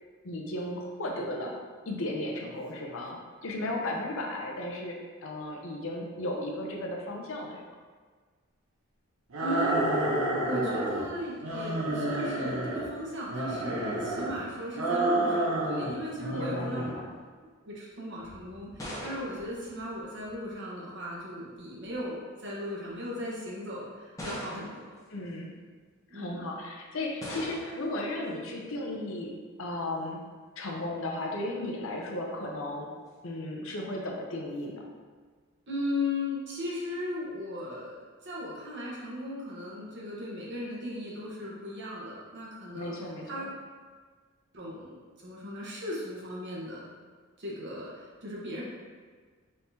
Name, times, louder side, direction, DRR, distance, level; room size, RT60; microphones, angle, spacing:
voice 1, 0.2-1.5 1.9-5.0 5.2-7.6 16.3-17.1 25.1-25.5 26.1-29.3 29.6-30.2 30.6-32.9 33.2-34.8 42.7-43.4, left 1 dB, 65° left, 0 dB, 0.6 m, -35 dB
sound 1, 9.3-11.1 11.4-12.9 13.3-14.3 14.7-15.9 16.2-16.9, right 1 dB, 75° right, 0.7 m, -29 dB
voice 2, 9.4-10.0 10.4-16.8 17.6-24.8 26.1-26.4 35.7-42.9 43.2-43.5 44.5-46.8 47.4-48.6, left 1 dB, 55° right, -5 dB, 1.0 m, -37 dB
sound 2, 18.2-20.5 21.6-22.0 22.9-23.0 24.2-25.0 27.2-27.9, equal, 15° left, 0.8 m, -41 dB
4.3 x 3.6 x 2.7 m, 1.5 s
head